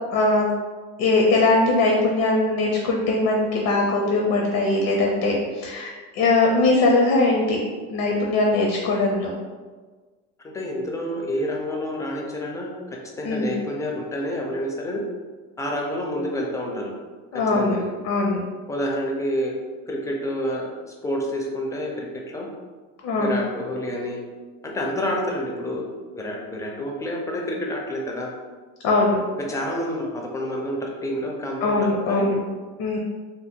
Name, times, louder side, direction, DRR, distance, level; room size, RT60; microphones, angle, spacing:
voice 1, 0.1-0.5 1.0-7.6 7.9-9.3 13.2-13.5 17.3-17.8 18.0-18.4 23.0-23.4 28.8-29.2 31.6-32.4 32.8-33.0, left 2 dB, 70° left, -1 dB, 0.6 m, -21 dB
voice 2, 10.5-12.7 13.2-15.0 15.6-16.9 17.5-17.9 18.7-19.5 19.9-20.7 21.0-22.5 23.2-24.2 24.6-25.8 26.1-28.3 29.5-32.2, equal, 10° left, -1 dB, 0.4 m, -28 dB
2.9 x 2.0 x 3.5 m, 1.4 s
cardioid pair, 120°, 34 cm